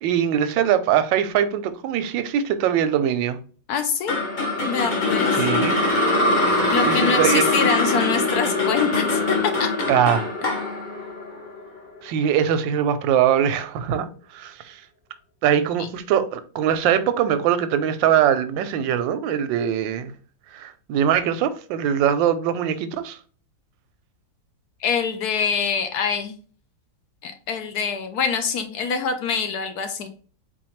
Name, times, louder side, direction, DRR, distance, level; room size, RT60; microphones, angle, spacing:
voice 1, 0.0-3.4 5.3-5.8 6.9-7.4 9.9-10.3 12.0-14.8 15.4-20.1 20.5-23.2, right 9 dB, 90° right, 1.3 m, -22 dB
voice 2, 3.7-4.1 4.6-5.4 6.5-9.7 24.8-26.4 27.2-30.1, left 6 dB, 70° left, 1.0 m, -25 dB
sound 1, 4.1-12.3, left 2 dB, 40° left, 0.8 m, -22 dB
4.2 x 4.0 x 3.1 m
omnidirectional pair, 2.0 m